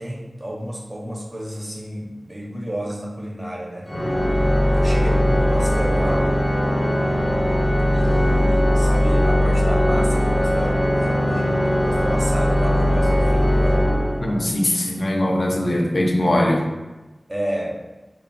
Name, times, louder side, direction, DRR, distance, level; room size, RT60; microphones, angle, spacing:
voice 1, 0.0-3.9 4.4-6.4 7.9-13.8 17.3-17.8, equal, 35° right, -2 dB, 0.5 m, -31 dB
Organ, 3.9-14.6, equal, 25° left, 0.6 m, -19 dB
voice 2, 14.2-16.7, left 1 dB, 60° left, 1 dB, 0.3 m, -21 dB
2.9 x 2.0 x 2.5 m, 1.1 s
wide cardioid pair, 65°, 0 cm